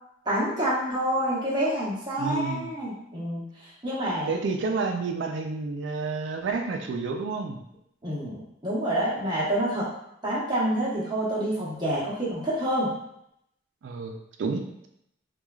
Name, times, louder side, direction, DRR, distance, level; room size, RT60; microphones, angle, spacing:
voice 1, 0.2-4.3 8.0-9.9 10.2-12.9, right 1 dB, 20° right, -8 dB, 0.9 m, -28 dB
voice 2, 2.2-2.7 4.3-7.6 13.8-14.9, right 4 dB, 65° right, 4 dB, 0.3 m, -30 dB
3.0 x 2.3 x 2.2 m, 0.76 s
head